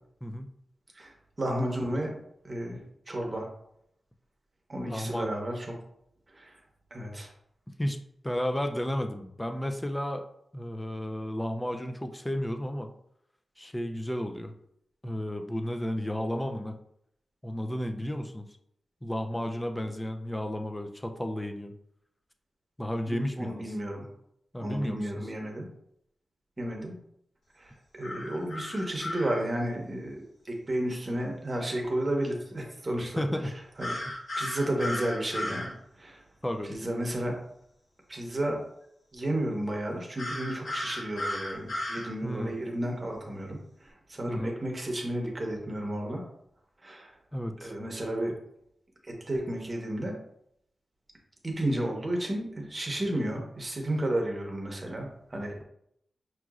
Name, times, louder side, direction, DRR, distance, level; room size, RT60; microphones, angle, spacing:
voice 1, 1.4-2.2 2.4-2.8 3.1-3.5 4.7-5.7 6.3-6.6 6.9-7.3 23.1-24.1 24.6-25.7 26.6-26.9 27.5-33.5 33.8-34.0 34.4-35.7 36.0-36.2 36.7-37.4 38.1-38.6 39.1-46.3 46.8-47.1 47.6-48.3 49.0-50.2 51.4-55.6, right 1 dB, 30° right, 0 dB, 0.9 m, -32 dB
voice 2, 4.9-5.3 7.8-8.0 8.2-10.3 10.5-12.9 13.6-14.5 15.0-16.8 17.4-18.5 19.0-21.7 22.8-23.6 24.5-25.1 33.0-33.5 36.4-36.7 42.2-42.6 44.3-44.5 47.3-47.7, equal, 10° left, 6 dB, 0.4 m, -32 dB
sound 1, 28.0-29.4 33.8-35.7 40.2-42.1, left 1 dB, 65° left, 1.2 m, -35 dB
5.8 x 2.9 x 2.4 m, 0.73 s
wide cardioid pair, 100°, 0 cm